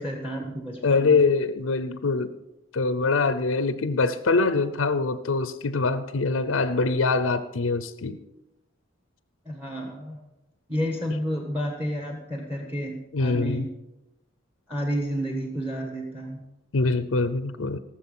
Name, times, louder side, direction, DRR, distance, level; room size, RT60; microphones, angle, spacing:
voice 1, 0.0-1.2 9.4-10.2 10.7-13.7 14.7-16.4, equal, 10° right, 2 dB, 1.5 m, -30 dB
voice 2, 0.8-2.3 2.7-8.2 13.1-13.7 16.7-17.8, left 3 dB, 70° left, 12 dB, 0.6 m, -24 dB
18.5 x 7.3 x 5.5 m, 0.95 s
head